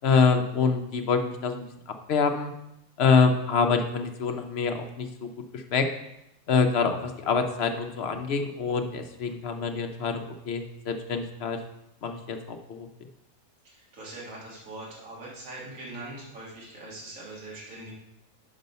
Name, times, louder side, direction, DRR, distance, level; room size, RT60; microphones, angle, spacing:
voice 1, 0.0-1.7 2.1-2.5 3.0-5.1 5.5-5.9 6.5-11.6 12.0-12.4 12.7-12.9, left 5 dB, 55° left, 5 dB, 0.8 m, -25 dB
voice 2, 13.6-17.9, right 2 dB, 60° right, -5 dB, 2.1 m, -42 dB
6.1 x 5.2 x 5.4 m, 0.85 s
omnidirectional pair, 1.6 m